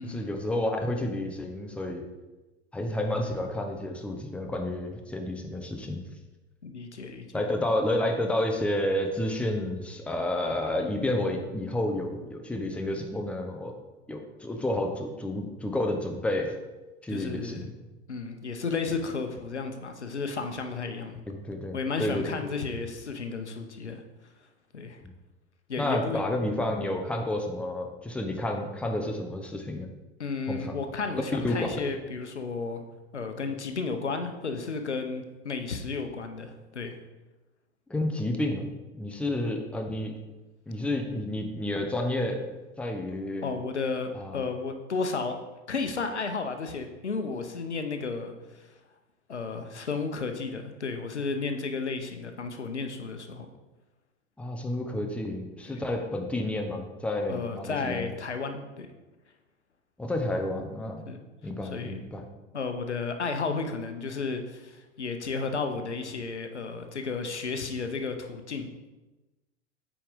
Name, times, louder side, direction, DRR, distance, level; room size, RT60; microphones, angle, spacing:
voice 1, 0.0-2.0 2.7-6.1 7.3-13.7 14.1-16.5 17.0-17.7 21.3-22.4 25.8-29.9 30.5-30.8 31.3-31.7 37.9-40.1 40.7-42.4 42.8-43.5 44.1-44.4 54.4-58.1 60.0-61.0 61.4-62.2, left 1 dB, 5° left, 3 dB, 0.8 m, -30 dB
voice 2, 6.6-7.3 17.1-17.7 18.1-21.2 21.7-24.0 24.7-25.0 25.7-26.2 30.2-32.8 33.1-37.0 43.4-45.4 45.7-48.3 48.6-48.7 49.3-53.5 55.7-55.8 57.3-58.9 61.1-61.2 61.7-62.0 62.5-68.7, left 4 dB, 85° left, 6 dB, 0.8 m, -33 dB
8.7 x 5.0 x 3.6 m, 1.1 s
figure-of-eight pair, 85°, 34 cm